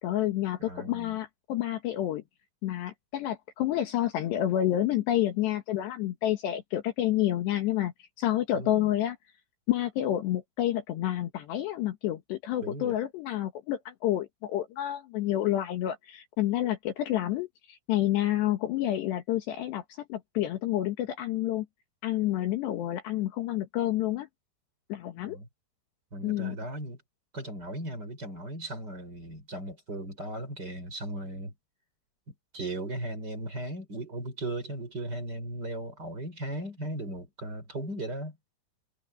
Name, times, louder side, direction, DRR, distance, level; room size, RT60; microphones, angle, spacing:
voice 1, 0.0-2.2 2.6-9.2 9.7-21.7 22.0-24.3 24.9-25.4 26.2-26.6, left 13 dB, 70° left, 3.4 m, -29 dB
voice 2, 0.6-1.2 8.5-8.9 12.6-13.0 25.2-25.5 26.1-27.0 27.3-31.5 32.3-38.4, right 1 dB, 20° right, 5.8 m, -37 dB
omnidirectional pair, 5.5 m